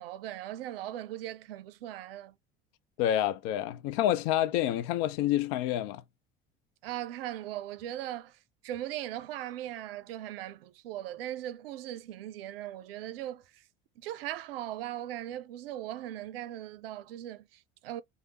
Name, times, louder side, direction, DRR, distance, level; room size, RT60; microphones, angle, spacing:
voice 1, 0.0-2.4 6.8-13.6 14.0-18.0, right 13 dB, 75° right, 0.5 m, -39 dB
voice 2, 3.0-6.0, left 12 dB, 60° left, 0.6 m, -28 dB
3.2 x 2.1 x 2.8 m
hypercardioid pair, 70°, 29 cm